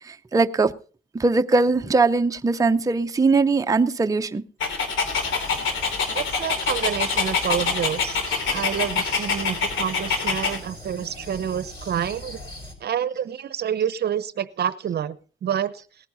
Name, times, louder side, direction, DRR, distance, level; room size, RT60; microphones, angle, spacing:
voice 1, 0.3-0.7 1.2-4.4, right 3 dB, 15° right, 0.7 m, -20 dB
Dog, 4.6-10.6, left 5 dB, 80° left, 2.9 m, -25 dB
sound 1, 5.0-12.7, left 1 dB, 25° left, 4.9 m, -41 dB
voice 2, 6.1-8.2 8.5-12.4 12.8-15.8, right 9 dB, 55° right, 0.8 m, -28 dB
18.5 x 9.6 x 4.0 m
cardioid pair, 90°, 20 cm